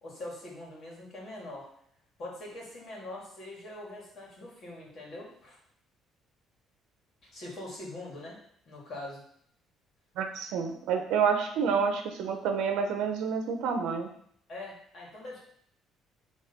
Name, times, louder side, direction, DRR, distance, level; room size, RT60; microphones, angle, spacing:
voice 1, 0.0-1.7 2.2-5.6 7.2-8.4 8.7-9.2 14.5-15.4, left 1 dB, 35° left, -3 dB, 2.2 m, -43 dB
voice 2, 10.2-14.1, right 6 dB, 75° right, 5 dB, 0.9 m, -28 dB
6.5 x 3.3 x 5.4 m, 0.65 s
cardioid pair, 175°, 0 cm